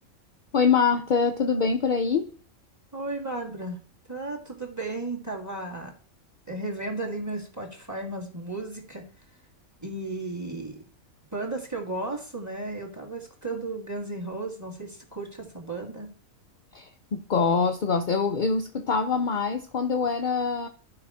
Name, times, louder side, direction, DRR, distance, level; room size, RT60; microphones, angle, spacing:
voice 1, 0.5-2.3 16.7-20.7, left 5 dB, 60° left, 0.5 m, -24 dB
voice 2, 2.9-3.8 4.1-5.9 6.5-9.0 9.8-10.8 11.3-16.1, right 2 dB, 10° right, 1.8 m, -34 dB
11.5 x 4.9 x 4.8 m
omnidirectional pair, 1.5 m